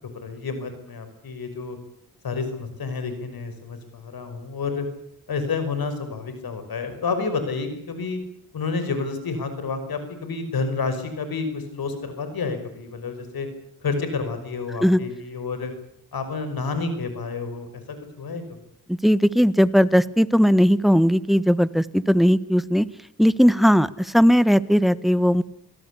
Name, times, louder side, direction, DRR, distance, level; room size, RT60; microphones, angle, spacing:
voice 1, 0.2-1.8 2.2-4.9 5.3-8.2 8.5-13.5 13.8-15.7 16.1-18.6, left 4 dB, 75° left, 9 dB, 5.7 m, -29 dB
voice 2, 18.9-22.9 23.2-25.4, equal, ahead, 17 dB, 1.2 m, -18 dB
27.0 x 17.5 x 8.5 m, 0.71 s
cardioid pair, 70°, 36 cm